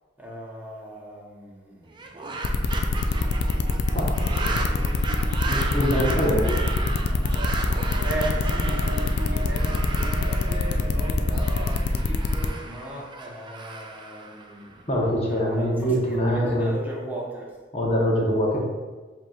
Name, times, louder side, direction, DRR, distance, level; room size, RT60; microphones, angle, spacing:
voice 1, 0.2-2.2 3.9-5.4 5.8-7.6 8.0-14.9 15.1-17.6, right 1 dB, 10° right, -4 dB, 0.9 m, -37 dB
sound 1, 1.9-15.1, right 3 dB, 25° right, 0.4 m, -35 dB
sound 2, 2.4-12.5, left 5 dB, 60° left, 0.3 m, -26 dB
sound 3, 3.1-11.7, equal, 55° right, 0.9 m, -34 dB
voice 2, 3.9-4.6 5.5-6.4 14.9-16.7 17.7-18.6, equal, 35° left, -3 dB, 1.0 m, -24 dB
7.5 x 2.9 x 2.4 m, 1.3 s
head